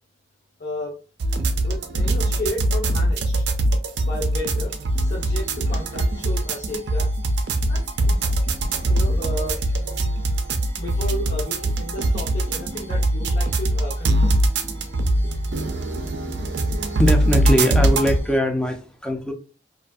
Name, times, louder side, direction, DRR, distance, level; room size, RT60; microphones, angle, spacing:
voice 1, 0.6-1.0 1.6-3.5 4.0-7.1 7.7-7.9 8.9-9.6 10.8-14.3, left 1 dB, 50° left, -5 dB, 0.6 m, -33 dB
sound 1, 1.2-18.2, right 1 dB, 70° right, 0.4 m, -22 dB
sound 2, 4.7-18.4, right 1 dB, 70° left, 1.3 m, -37 dB
voice 2, 17.0-19.3, left 1 dB, 5° left, 3 dB, 0.4 m, -21 dB
2.5 x 2.4 x 2.3 m, 0.34 s
head